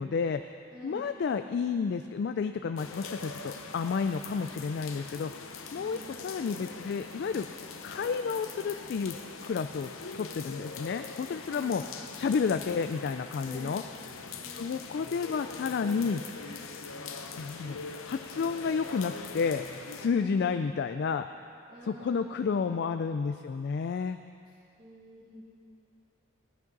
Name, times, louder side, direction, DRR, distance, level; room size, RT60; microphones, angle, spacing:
voice 1, 0.0-0.6 0.8-7.5 7.8-9.2 9.4-11.8 12.2-13.8 14.5-16.2 17.4-17.8 18.0-19.6 20.0-21.3 21.8-24.2, left 5 dB, 50° left, 8 dB, 0.3 m, -31 dB
voice 2, 0.7-1.1 5.7-6.1 11.4-11.8 13.4-13.8 14.3-14.8 20.1-20.5 21.7-22.6 24.8-25.4, left 1 dB, 20° right, -8 dB, 1.9 m, -47 dB
sound 1, 2.8-20.1, left 4 dB, 75° left, 0.8 m, -42 dB
15.5 x 11.5 x 4.0 m, 2.5 s
head